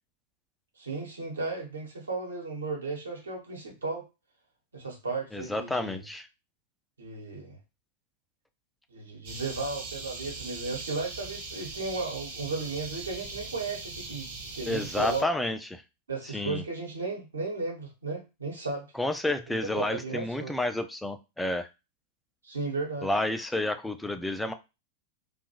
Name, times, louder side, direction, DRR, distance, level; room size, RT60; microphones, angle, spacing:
voice 1, 0.8-4.0 4.7-6.0 7.0-7.6 8.9-14.3 14.5-15.3 16.1-18.9 19.5-20.5 22.4-23.1, right 3 dB, 75° right, 0 dB, 1.1 m, -35 dB
voice 2, 5.3-6.3 14.7-15.8 16.3-16.6 19.0-21.7 23.0-24.5, left 1 dB, 5° left, 8 dB, 0.3 m, -30 dB
sound 1, 9.2-15.2, right 3 dB, 50° right, 0.9 m, -40 dB
2.6 x 2.4 x 2.9 m, 0.27 s
figure-of-eight pair, 90°, 0 cm